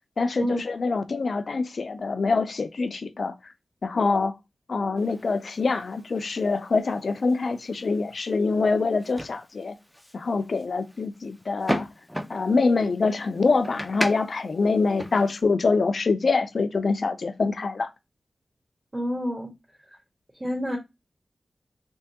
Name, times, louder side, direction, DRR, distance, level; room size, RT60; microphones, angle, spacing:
voice 1, 0.2-3.3 3.8-4.3 4.7-9.8 10.1-11.9 12.3-17.9, left 4 dB, 70° left, 0.5 m, -25 dB
sound 1, 5.0-15.4, equal, ahead, 0.6 m, -37 dB
voice 2, 18.9-19.5 20.4-20.8, equal, 15° right, 1.4 m, -27 dB
3.5 x 3.0 x 2.8 m
cardioid pair, 50°, 0 cm